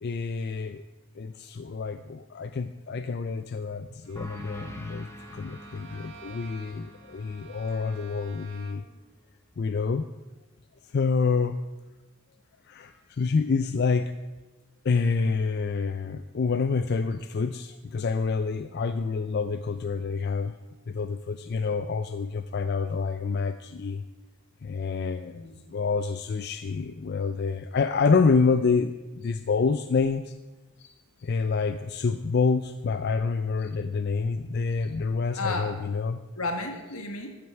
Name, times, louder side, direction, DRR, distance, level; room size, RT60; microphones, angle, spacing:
voice 1, 0.0-0.8 1.2-8.8 9.6-10.1 10.9-11.6 12.7-14.1 14.8-20.5 20.9-24.0 24.6-25.4 25.7-30.3 30.8-30.9 31.2-36.2, left 4 dB, 45° left, 10 dB, 0.4 m, -27 dB
Bowed string instrument, 4.0-9.0, right 5 dB, 55° right, 1.1 m, -50 dB
sound 1, 4.2-9.3, equal, 10° left, 1.0 m, -47 dB
voice 2, 25.3-25.6 35.3-35.8 36.4-37.3, left 2 dB, 75° left, 5 dB, 1.8 m, -34 dB
14.0 x 9.4 x 4.6 m, 1.1 s
head